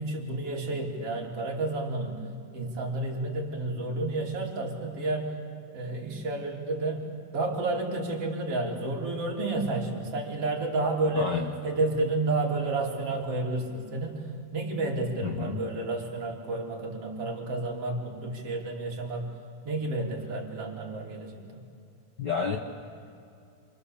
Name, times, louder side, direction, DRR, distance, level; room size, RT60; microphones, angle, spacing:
voice 1, 0.0-5.3 5.7-11.4 11.6-19.3 19.6-21.6, right 2 dB, 45° right, -1 dB, 3.9 m, -31 dB
voice 2, 11.1-11.5 15.2-15.6 22.2-22.6, left 5 dB, 90° left, 2 dB, 0.9 m, -30 dB
28.0 x 24.5 x 7.1 m, 2.6 s
omnidirectional pair, 3.8 m